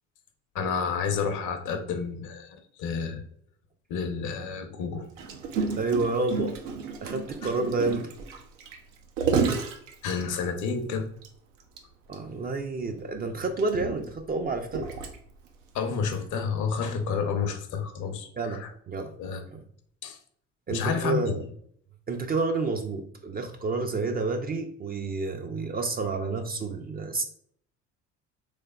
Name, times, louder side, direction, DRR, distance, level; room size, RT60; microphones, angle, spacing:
voice 1, 0.5-3.2 3.9-5.0 10.0-11.1 15.7-18.7 19.2-19.4 20.0-20.2 20.7-21.2, left 6 dB, 55° left, 7 dB, 0.7 m, -30 dB
Gurgling, 5.2-10.7 11.2-11.3 11.6-11.8 12.1-12.2 13.0-15.5 16.1-16.3, right 5 dB, 85° right, 0.6 m, -31 dB
voice 2, 5.7-6.6 7.0-8.1 12.1-14.9 18.4-19.1 19.5-19.6 20.7-21.4 22.1-27.2, right 3 dB, 25° right, 5 dB, 0.4 m, -29 dB
3.3 x 3.3 x 2.2 m, 0.64 s
hypercardioid pair, 60°, 37 cm